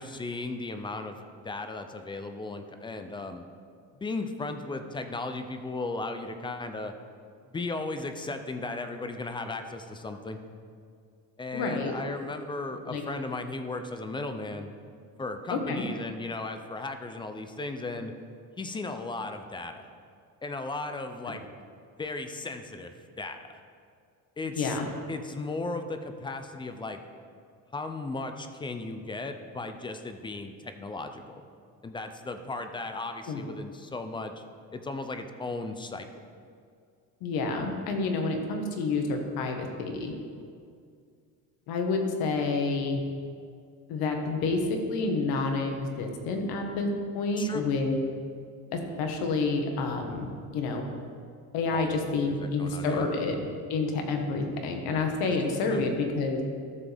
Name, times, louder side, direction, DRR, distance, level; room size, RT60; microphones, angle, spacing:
voice 1, 0.0-3.4 4.0-6.9 7.5-10.4 11.4-14.7 15.2-18.1 18.6-19.9 20.4-21.5 22.0-23.6 24.4-24.8 25.1-27.0 27.7-31.4 31.8-34.4 34.7-36.1 47.4-47.7 51.7-52.0 52.3-53.1 55.7-55.8, left 3 dB, 15° left, 7 dB, 0.4 m, -36 dB
voice 2, 11.5-11.9 12.8-13.0 15.5-15.8 21.2-21.3 24.6-24.9 33.3-33.4 37.2-40.1 41.7-43.0 43.9-48.0 48.7-50.3 50.5-50.8 51.5-53.4 53.7-56.4, left 3 dB, 80° left, 3 dB, 1.5 m, -29 dB
13.5 x 7.3 x 3.5 m, 2.2 s
cardioid pair, 155°, 36 cm